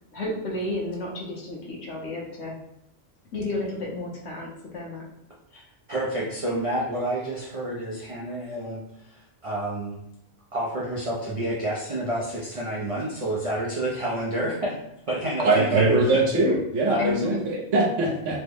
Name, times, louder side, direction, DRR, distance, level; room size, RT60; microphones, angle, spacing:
voice 1, 0.1-2.6 3.3-5.0 16.5-16.6 17.0-17.5, left 2 dB, 65° left, -2 dB, 1.0 m, -32 dB
voice 2, 5.9-10.0 10.5-14.8 15.1-16.2 16.9-17.3, right 1 dB, 50° right, -5 dB, 0.4 m, -29 dB
voice 3, 15.4-18.4, right 2 dB, 75° right, -1 dB, 1.1 m, -22 dB
3.2 x 2.1 x 3.4 m, 0.79 s
omnidirectional pair, 1.3 m